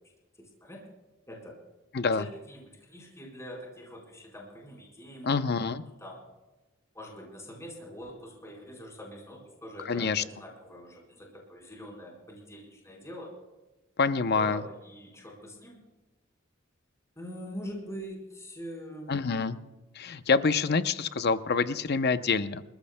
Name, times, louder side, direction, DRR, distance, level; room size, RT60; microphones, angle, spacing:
voice 1, 0.4-0.9 1.3-1.6 2.2-5.6 6.0-6.2 6.9-13.3 14.2-15.8 17.2-19.7, equal, 15° left, -2 dB, 4.4 m, -44 dB
voice 2, 5.2-5.8 9.9-10.2 14.0-14.6 19.1-19.5 20.0-22.6, left 4 dB, 55° left, 12 dB, 0.7 m, -26 dB
28.5 x 14.0 x 2.2 m, 1.1 s
head